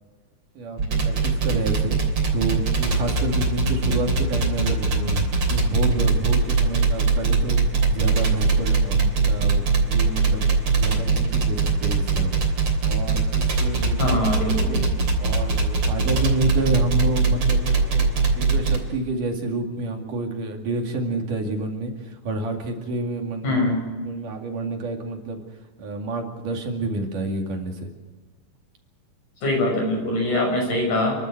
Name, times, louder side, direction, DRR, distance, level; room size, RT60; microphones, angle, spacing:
voice 1, 0.6-2.0 2.3-7.6 7.9-10.4 10.8-12.4 12.9-14.2 14.6-14.9 15.2-23.6 24.1-25.4 25.8-27.9, right 2 dB, 75° right, 2 dB, 3.9 m, -29 dB
sound 1, 0.8-18.8, right 4 dB, 50° right, 4.1 m, -21 dB
voice 2, 14.0-14.8 23.4-23.8 29.4-31.2, left 1 dB, 65° left, 1 dB, 7.8 m, -23 dB
30.0 x 12.0 x 7.9 m, 1.4 s
omnidirectional pair, 3.7 m